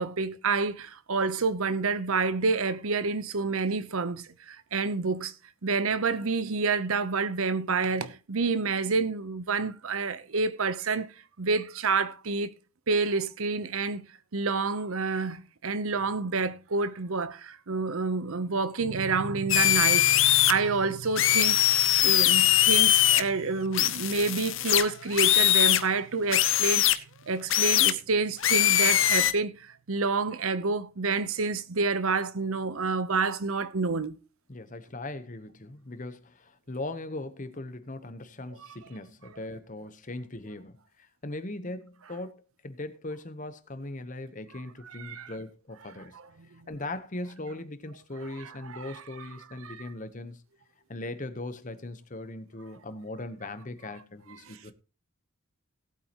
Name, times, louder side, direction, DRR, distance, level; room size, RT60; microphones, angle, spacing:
voice 1, 0.0-5.3 5.6-11.1 11.4-12.5 12.9-14.0 14.3-21.7 22.0-26.9 27.3-29.5 29.9-34.2 45.0-45.3 48.4-49.0 49.6-49.8 54.5-54.6, right 4 dB, 70° right, 0.8 m, -28 dB
sound 1, 18.8-28.9, right 6 dB, 55° right, 2.8 m, -44 dB
sound 2, 19.5-20.5 21.2-23.2 23.7-25.8 26.3-27.0 27.5-27.9 28.4-29.3, left 13 dB, 60° left, 0.8 m, -22 dB
voice 2, 34.5-46.2 46.7-50.4 50.9-54.7, left 2 dB, 35° left, 1.0 m, -39 dB
18.0 x 8.4 x 3.0 m
head